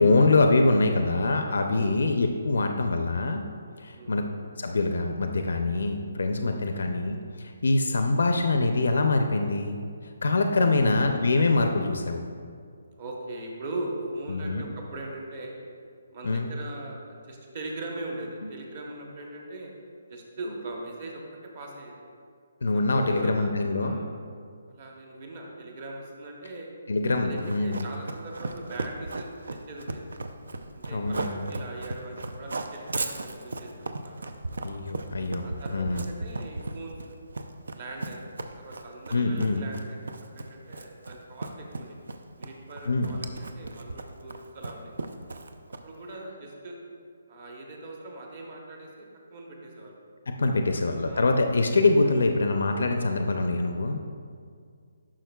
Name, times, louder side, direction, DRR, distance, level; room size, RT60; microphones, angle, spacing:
voice 1, 0.0-3.4 3.8-4.3 4.6-9.8 10.2-12.3 14.3-14.6 16.2-16.5 18.4-18.5 22.6-24.0 26.9-27.8 30.9-31.5 34.6-36.0 39.1-39.6 42.8-43.1 50.3-54.0, left 3 dB, 70° left, 5 dB, 0.4 m, -24 dB
voice 2, 13.0-15.6 16.1-19.7 20.1-21.2 21.5-21.9 22.7-23.5 23.8-24.1 24.7-26.7 27.2-30.0 30.7-34.6 35.4-37.0 37.8-42.0 42.4-44.9 45.8-46.8 47.3-50.0 50.7-51.3, right 2 dB, 25° right, 0 dB, 0.8 m, -40 dB
Run, 27.4-46.0, right 2 dB, 80° right, 0.5 m, -36 dB
11.0 x 5.8 x 2.3 m, 2.2 s
hypercardioid pair, 180°, 0 cm